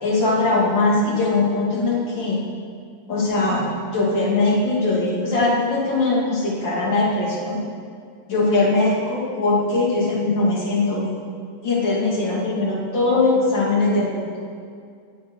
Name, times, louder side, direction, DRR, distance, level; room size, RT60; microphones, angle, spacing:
voice 1, 0.0-2.4 3.1-7.6 8.3-11.1 11.6-14.2, left 2 dB, 35° left, -4 dB, 3.1 m, -21 dB
20.0 x 7.2 x 5.7 m, 2.2 s
omnidirectional pair, 3.8 m